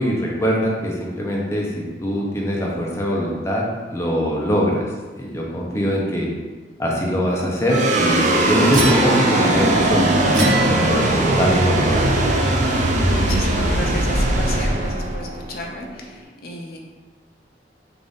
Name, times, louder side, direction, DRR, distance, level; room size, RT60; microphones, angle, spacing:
voice 1, 0.0-4.9 5.2-6.3 6.8-12.1, equal, 15° left, -3 dB, 0.6 m, -22 dB
sound 1, 7.7-16.2, right 1 dB, 45° right, 0.4 m, -19 dB
sound 2, 8.7-13.5, equal, 40° left, 1.1 m, -32 dB
sound 3, 8.7-9.6 10.3-11.3, right 3 dB, 85° right, 0.8 m, -26 dB
voice 2, 12.7-16.8, left 2 dB, 55° left, 0 dB, 0.6 m, -33 dB
3.8 x 2.5 x 3.5 m, 1.3 s
head